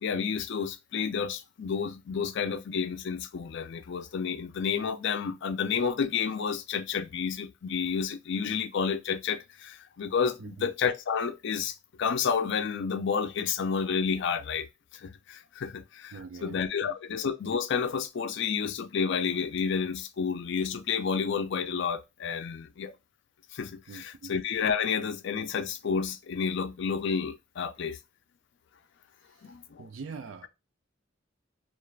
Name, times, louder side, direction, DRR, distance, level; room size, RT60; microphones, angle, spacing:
voice 1, 0.0-14.7 14.9-22.9 23.5-28.0 29.4-29.9, left 6 dB, 65° left, 0.4 m, -30 dB
voice 2, 16.1-16.9 23.9-24.4 29.8-30.5, right 5 dB, 80° right, 0.4 m, -43 dB
2.5 x 2.4 x 3.1 m
head